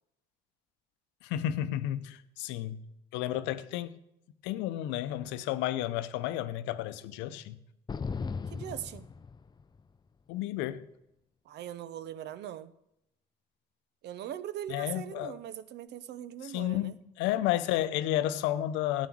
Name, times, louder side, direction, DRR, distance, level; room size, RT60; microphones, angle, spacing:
voice 1, 1.2-2.8 3.1-4.0 4.4-7.6 10.3-10.8 14.7-15.4 16.4-19.1, left 13 dB, 80° left, 0.7 m, -32 dB
sound 1, 7.9-9.8, left 5 dB, 25° left, 0.5 m, -37 dB
voice 2, 8.5-9.1 11.5-12.7 14.0-16.9, right 11 dB, 65° right, 0.7 m, -40 dB
12.5 x 8.1 x 6.2 m
supercardioid pair, 70°, 18 cm